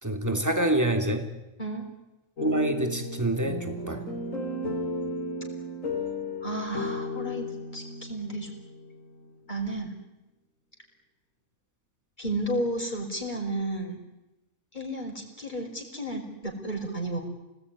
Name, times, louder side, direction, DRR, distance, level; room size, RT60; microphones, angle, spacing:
voice 1, 0.0-1.3 2.4-4.1, right 1 dB, 10° right, 5 dB, 3.0 m, -26 dB
sound 1, 2.4-9.3, left 2 dB, 65° left, 3.6 m, -34 dB
voice 2, 6.4-7.5 7.7-8.5 9.5-9.9 12.2-14.0 14.7-17.2, right 1 dB, 30° left, 1 dB, 5.8 m, -32 dB
29.5 x 20.0 x 9.9 m, 0.99 s
omnidirectional pair, 1.5 m